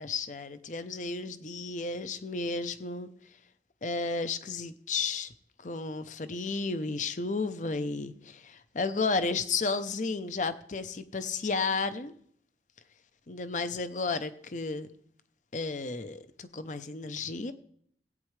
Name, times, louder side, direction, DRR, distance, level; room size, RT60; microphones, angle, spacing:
voice 1, 0.0-3.1 3.8-5.3 5.6-12.1 13.3-14.9 15.5-17.5, left 4 dB, 45° left, 12 dB, 0.7 m, -33 dB
17.0 x 8.8 x 3.2 m, 0.64 s
head